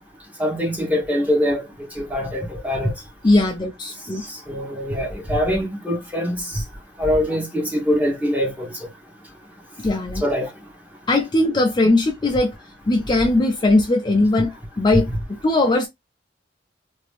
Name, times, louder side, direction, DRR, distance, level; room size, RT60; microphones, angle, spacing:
voice 1, 0.4-1.6 2.0-2.9 4.5-6.6 7.0-8.7 10.2-10.5, equal, 10° right, 1.2 m, -23 dB
voice 2, 3.2-4.2 9.8-10.2 11.1-12.5 12.9-15.9, left 2 dB, 25° left, 0.5 m, -19 dB
2.9 x 2.7 x 3.1 m
head